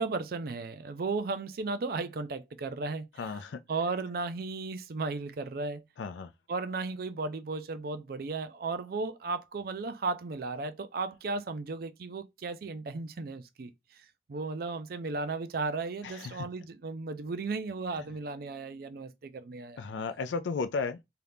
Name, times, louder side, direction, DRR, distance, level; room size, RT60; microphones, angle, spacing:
voice 1, 0.0-3.4 3.7-5.8 6.5-14.0 14.3-19.8, right 3 dB, 55° right, 0.4 m, -35 dB
voice 2, 3.2-3.6 6.0-6.3 16.0-16.5 18.0-18.1 19.8-21.0, left 4 dB, 90° left, 0.4 m, -34 dB
2.8 x 2.4 x 3.4 m
head